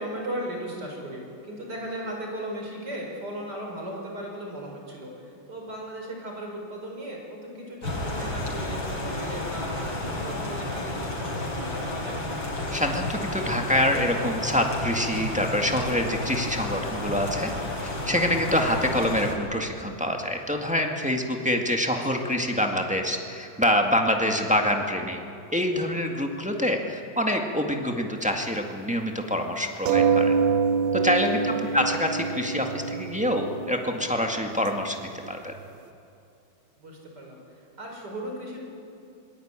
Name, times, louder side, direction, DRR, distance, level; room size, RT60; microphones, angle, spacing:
voice 1, 0.0-5.1 5.5-12.2 22.1-22.3 31.5-31.9 36.8-37.4 37.8-38.6, right 1 dB, 55° right, 0 dB, 5.5 m, -37 dB
sound 1, 7.8-19.3, left 2 dB, 90° left, 4.7 m, -31 dB
voice 2, 12.7-17.5 17.8-25.2 25.5-30.3 30.9-35.5, left 1 dB, 5° right, 2 dB, 1.8 m, -26 dB
sound 2, 29.9-34.9 35.2-35.6, right 6 dB, 80° right, 1.7 m, -26 dB
26.0 x 20.5 x 9.0 m, 2.8 s
omnidirectional pair, 2.1 m